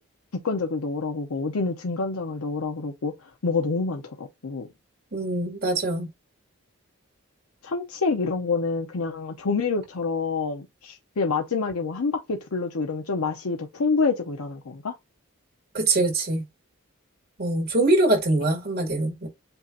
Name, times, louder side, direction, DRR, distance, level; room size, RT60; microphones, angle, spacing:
voice 1, 0.4-4.7 7.6-14.9, left 4 dB, 85° left, 0.7 m, -27 dB
voice 2, 5.1-6.1 15.7-16.4 17.4-19.3, right 2 dB, 45° right, 2.0 m, -23 dB
7.9 x 2.7 x 2.5 m
head